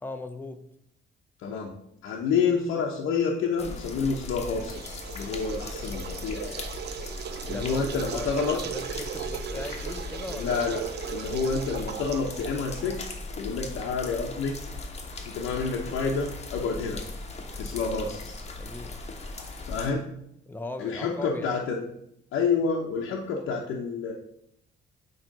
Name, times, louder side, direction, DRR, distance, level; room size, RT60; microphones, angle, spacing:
voice 1, 0.0-0.6 7.5-10.7 18.6-19.0 20.5-21.5, left 2 dB, 10° left, 6 dB, 0.7 m, -38 dB
voice 2, 1.4-1.7 2.0-6.7 7.5-8.6 10.3-14.6 15.2-17.0 17.5-18.4 19.6-20.1 20.8-21.8 22.3-24.1, left 5 dB, 85° left, -2 dB, 0.9 m, -29 dB
sound 1, 3.6-19.9, left 3 dB, 35° left, 1.2 m, -38 dB
sound 2, 4.6-13.1, right 10 dB, 55° right, 0.4 m, -38 dB
7.4 x 3.2 x 5.2 m, 0.74 s
cardioid pair, 90°, 20 cm